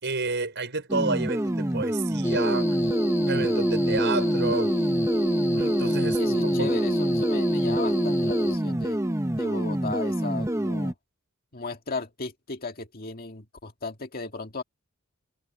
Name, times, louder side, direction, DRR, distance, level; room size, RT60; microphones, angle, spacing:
voice 1, 0.0-2.8 3.3-4.7 5.5-6.7, right 3 dB, 55° right, 5.9 m, -30 dB
sound 1, 0.9-10.9, right 1 dB, 15° right, 0.9 m, -27 dB
sound 2, 2.2-8.6, equal, 15° left, 1.7 m, -26 dB
voice 2, 6.2-9.0 9.4-10.9 11.5-14.6, left 3 dB, 45° left, 2.1 m, -36 dB
head